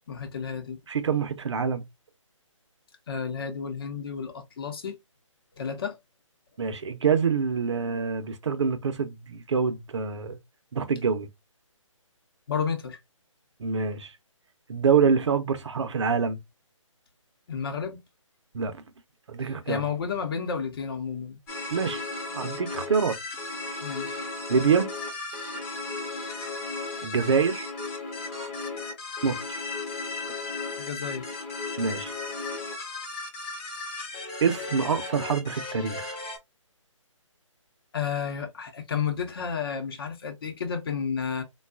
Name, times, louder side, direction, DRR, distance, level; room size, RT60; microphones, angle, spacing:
voice 1, 0.1-0.8 3.1-5.0 5.6-6.0 12.5-13.0 17.5-18.0 19.7-21.4 23.8-24.3 30.8-31.2 37.9-41.4, left 6 dB, 45° left, 0.9 m, -31 dB
voice 2, 0.9-1.8 6.6-10.4 10.7-11.3 13.6-14.1 14.7-16.4 18.5-18.8 19.3-19.8 21.7-22.0 22.3-23.2 24.5-24.9 27.0-27.7 29.2-29.6 31.8-32.1 34.4-36.2, right 6 dB, 60° right, 0.6 m, -26 dB
sound 1, 21.5-36.4, left 3 dB, 15° left, 0.8 m, -35 dB
3.6 x 2.3 x 2.4 m
figure-of-eight pair, 150°, 17 cm